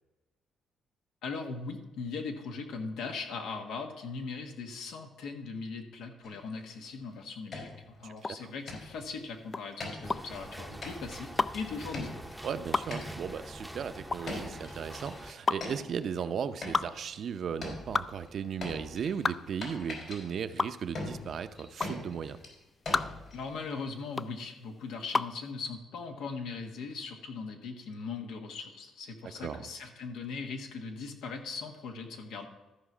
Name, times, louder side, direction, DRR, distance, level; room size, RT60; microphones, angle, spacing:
voice 1, 1.2-12.1 23.3-32.5, left 4 dB, 85° left, 4 dB, 1.4 m, -39 dB
sound 1, 6.2-6.9 7.2-7.3 7.5-8.2 8.7-9.1 9.8-10.5 10.8-11.4 11.9-12.5 12.9-13.4 14.3-16.3 16.6-17.3 17.6-23.8, left 2 dB, 55° left, 3.3 m, -42 dB
voice 2, 8.0-8.5 12.4-22.4 29.4-29.7, right 7 dB, 60° right, 10 dB, 0.6 m, -36 dB
sound 2, 8.2-25.4, left 3 dB, 30° left, 0.3 m, -34 dB
sound 3, 10.0-15.3, right 1 dB, ahead, 0.7 m, -45 dB
13.5 x 4.8 x 6.0 m, 1.1 s
cardioid pair, 90°, 0 cm